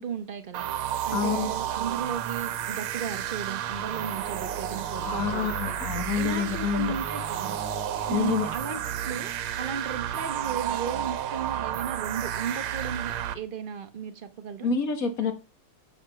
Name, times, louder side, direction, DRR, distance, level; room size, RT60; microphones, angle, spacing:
voice 1, 0.0-5.8 6.2-7.6 8.1-14.7, right 6 dB, 55° right, 0.6 m, -35 dB
sound 1, 0.5-13.3, right 10 dB, 80° right, 1.7 m, -31 dB
voice 2, 1.1-1.5 5.0-6.9 8.1-8.5 14.6-15.3, left 6 dB, 45° left, 1.8 m, -27 dB
7.9 x 5.0 x 6.8 m
omnidirectional pair, 2.4 m